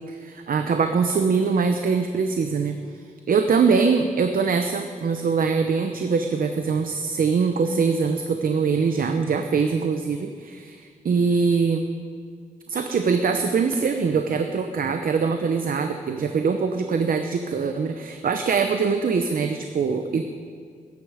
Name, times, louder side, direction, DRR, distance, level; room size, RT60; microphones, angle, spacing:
voice 1, 0.1-11.9 12.7-20.2, right 5 dB, 70° right, 6 dB, 0.8 m, -23 dB
21.0 x 9.6 x 5.0 m, 2.1 s
wide cardioid pair, 105°, 15 cm